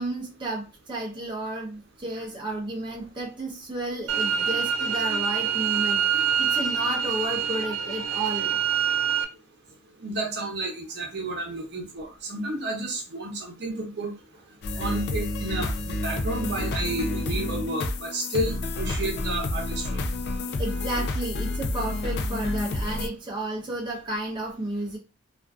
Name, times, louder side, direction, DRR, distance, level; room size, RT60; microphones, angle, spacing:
voice 1, 0.0-8.6 20.6-25.0, right 2 dB, 25° right, -2 dB, 0.5 m, -32 dB
sound 1, 4.1-9.2, right 7 dB, 85° right, 0.4 m, -25 dB
voice 2, 10.0-14.1 14.8-19.6 19.9-20.0, right 1 dB, 60° right, 1 dB, 0.8 m, -31 dB
sound 2, 14.6-23.1, left 2 dB, 60° left, 0.3 m, -29 dB
2.5 x 2.4 x 2.2 m, 0.30 s
head